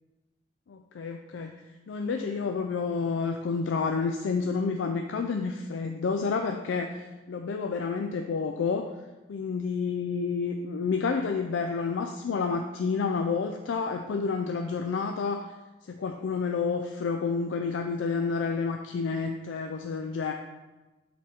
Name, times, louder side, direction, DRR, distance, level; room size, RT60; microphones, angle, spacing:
voice 1, 0.7-1.5 1.9-8.9 9.3-15.4 15.8-20.3, left 5 dB, 80° left, 5 dB, 0.4 m, -29 dB
6.2 x 3.8 x 4.2 m, 1.1 s
head